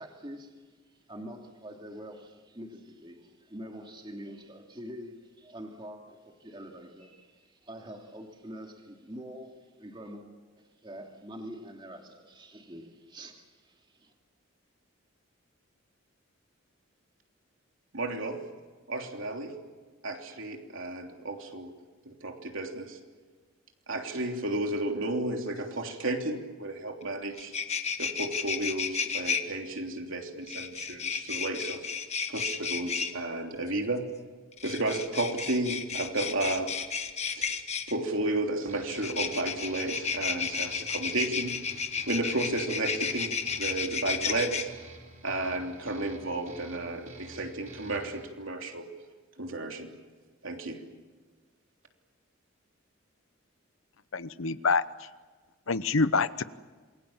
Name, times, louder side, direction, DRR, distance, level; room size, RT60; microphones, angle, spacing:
voice 1, 0.0-10.3 10.6-14.1, equal, 25° right, 2.8 m, -45 dB
voice 2, 17.9-18.4 18.9-19.6 20.0-21.7 22.0-23.0 23.9-27.5 28.0-31.8 32.3-34.1 34.6-36.7 37.3-37.6 37.9-41.5 42.1-44.7 45.2-48.9 49.4-49.9 50.4-50.8, right 2 dB, 75° right, 3.3 m, -32 dB
sound 1, 27.0-27.1 27.3-29.4 30.5-33.1 34.5-37.9 38.9-44.6, left 6 dB, 35° left, 1.4 m, -32 dB
sound 2, 38.7-48.3, right 2 dB, 40° right, 3.7 m, -50 dB
voice 3, 54.1-54.8 55.7-56.4, left 4 dB, 80° left, 0.9 m, -26 dB
27.5 x 22.0 x 7.3 m
head